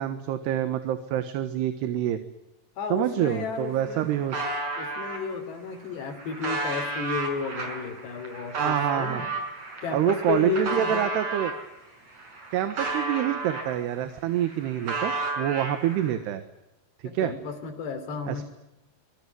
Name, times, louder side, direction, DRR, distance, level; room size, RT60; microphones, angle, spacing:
voice 1, 0.0-2.2 2.9-4.4 8.5-9.2 9.9-11.5 12.5-16.4 17.1-17.3 18.3-18.4, right 11 dB, 75° right, 10 dB, 3.4 m, -27 dB
voice 2, 2.8-4.3 4.8-9.3 9.8-11.1 17.0-18.4, left 5 dB, 75° left, 7 dB, 5.4 m, -33 dB
sound 1, 3.3-3.4 3.6-5.2 5.8-11.6 12.1-14.0 14.3-16.1, right 3 dB, 40° right, 6.5 m, -32 dB
25.5 x 22.0 x 9.6 m, 0.94 s
omnidirectional pair, 4.8 m